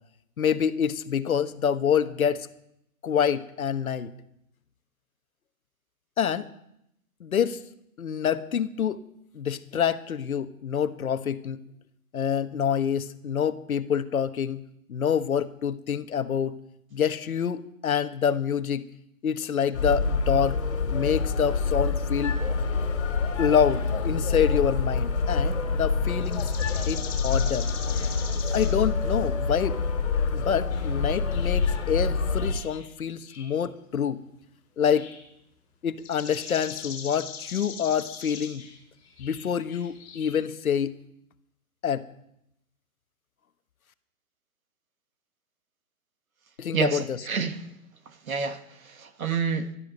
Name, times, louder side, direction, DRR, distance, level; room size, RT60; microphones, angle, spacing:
voice 1, 0.4-2.5 3.0-4.1 6.2-6.5 7.2-7.6 8.0-9.0 9.3-11.6 12.1-14.6 14.9-16.6 16.9-18.9 19.2-20.6 20.9-22.4 23.4-26.5 26.9-27.7 28.5-29.8 30.3-34.2 34.8-35.1 35.8-38.7 39.2-40.9 41.8-42.1 46.6-47.2, left 8 dB, 70° left, 11 dB, 1.2 m, -26 dB
sound 1, 19.7-32.5, left 4 dB, 50° left, 2.8 m, -26 dB
sound 2, 22.2-22.4 23.7-24.0 24.9-25.0 25.5-25.6 26.2-28.8 29.1-29.2 30.1-30.2 30.7-30.9 31.3-32.9 33.2-33.6 34.0-34.1 34.8-35.3 36.0-40.5, left 6 dB, 25° left, 4.1 m, -41 dB
voice 2, 46.7-47.6 48.3-49.7, right 6 dB, 65° right, 8 dB, 1.7 m, -29 dB
12.5 x 12.0 x 5.4 m, 0.79 s
hypercardioid pair, 170°, 44 cm